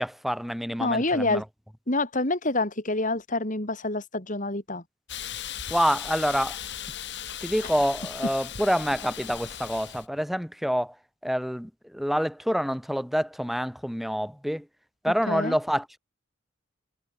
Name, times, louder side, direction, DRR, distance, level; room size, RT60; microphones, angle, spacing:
voice 1, 0.0-1.4 5.7-6.6 7.4-11.0 11.2-14.7 15.0-16.0, equal, ahead, 2.3 m, -27 dB
voice 2, 0.8-1.4 1.9-4.8 15.3-15.6, left 2 dB, 35° left, 3.2 m, -27 dB
Hiss, 5.1-10.1, left 10 dB, 55° left, 2.3 m, -37 dB
head